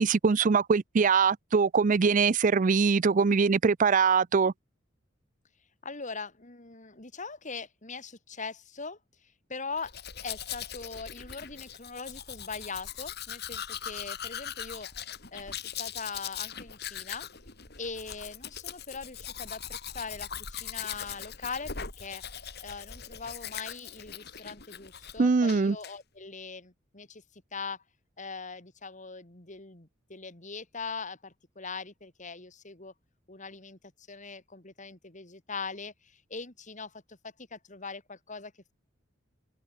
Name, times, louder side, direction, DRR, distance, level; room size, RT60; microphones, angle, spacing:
voice 1, 0.0-4.5 25.2-25.8, right 5 dB, 40° right, 0.4 m, -23 dB
voice 2, 5.8-10.0 10.2-14.9 15.3-17.3 17.8-22.2 22.6-27.8 28.2-32.9 33.3-33.8 34.1-38.7, left 4 dB, 40° left, 3.1 m, -41 dB
Domestic sounds home sounds, 9.8-25.2 25.5-25.9, left 9 dB, 55° left, 3.8 m, -40 dB
head